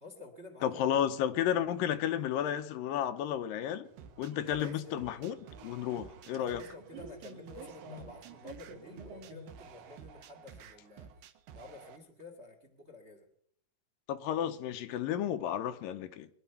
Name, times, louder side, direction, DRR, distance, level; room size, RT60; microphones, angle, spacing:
voice 1, 0.0-0.8 4.5-5.1 6.4-11.1 11.5-13.3, left 3 dB, 30° right, 1.4 m, -51 dB
voice 2, 0.6-3.9 4.2-5.4 5.6-6.6 14.1-16.3, left 10 dB, 80° left, 2.5 m, -32 dB
sound 1, 3.8-9.9, right 2 dB, 60° right, 3.3 m, -52 dB
sound 2, 4.0-12.0, right 7 dB, 75° right, 2.7 m, -52 dB
23.0 x 11.0 x 5.7 m
omnidirectional pair, 4.0 m